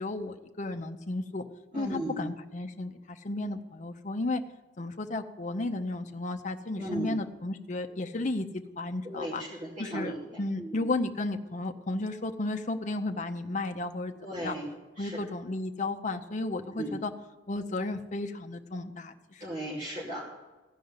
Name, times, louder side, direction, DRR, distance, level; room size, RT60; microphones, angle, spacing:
voice 1, 0.0-1.4 1.7-4.4 4.8-9.4 9.8-14.5 15.0-17.1 17.5-19.4, left 2 dB, 45° left, 5 dB, 0.7 m, -33 dB
voice 2, 1.7-2.2 6.8-7.1 9.0-10.9 14.2-14.7 15.0-15.2 16.8-16.9 19.4-20.2, right 1 dB, 45° right, -7 dB, 2.8 m, -36 dB
15.5 x 5.2 x 9.6 m, 1.2 s
head